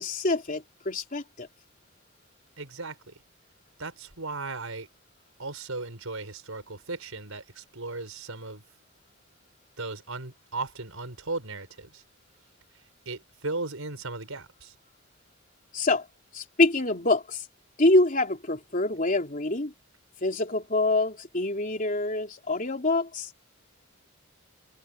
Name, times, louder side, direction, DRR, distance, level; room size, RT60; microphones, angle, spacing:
voice 1, 0.0-1.5 15.7-16.1 16.3-17.4 17.8-19.7 20.2-23.3, left 2 dB, 40° left, 3.4 m, -25 dB
voice 2, 2.6-3.2 3.8-4.9 5.4-8.6 9.8-12.0 12.7-14.7, right 3 dB, 85° right, 4.8 m, -37 dB
head